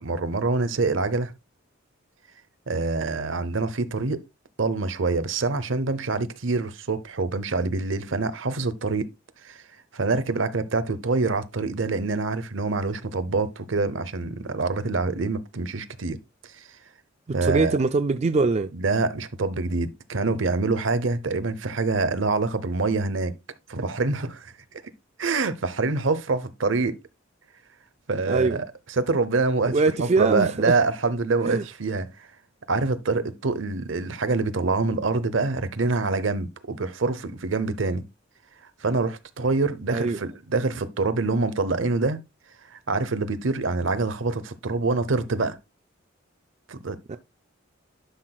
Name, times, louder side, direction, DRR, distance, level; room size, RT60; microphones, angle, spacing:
voice 1, 0.0-1.3 2.7-4.2 4.6-9.1 9.4-9.6 9.9-16.2 16.6-16.7 17.3-17.7 18.7-23.4 23.7-24.5 25.2-27.0 28.1-28.6 29.0-32.3 32.7-38.0 38.8-42.2 42.7-45.6 46.7-47.0, right 3 dB, 70° right, 0.8 m, -25 dB
voice 2, 17.4-18.7 28.3-28.6 29.7-30.8 31.4-31.7 39.9-40.2 47.1-47.2, right 3 dB, 35° right, 0.4 m, -23 dB
11.5 x 6.0 x 2.3 m
head